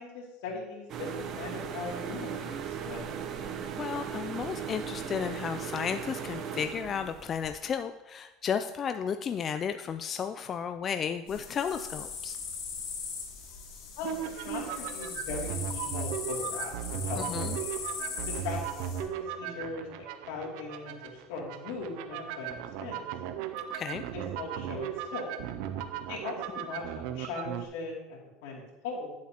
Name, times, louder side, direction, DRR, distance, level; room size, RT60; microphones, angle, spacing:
voice 1, 0.0-3.1 13.9-17.6 18.3-19.1 19.4-23.0 24.1-25.3 26.1-29.1, left 3 dB, 85° left, -3 dB, 2.6 m, -39 dB
sound 1, 0.9-7.5, right 7 dB, 50° right, 0.8 m, -38 dB
voice 2, 3.4-12.4 17.2-17.6 23.7-24.0, left 7 dB, 35° left, 8 dB, 0.3 m, -33 dB
sound 2, 11.3-19.0, left 5 dB, 60° left, 2.5 m, -39 dB
sound 3, 14.0-27.7, right 10 dB, 75° right, 0.5 m, -37 dB
10.5 x 7.3 x 2.9 m, 1.0 s
supercardioid pair, 125°, 0 cm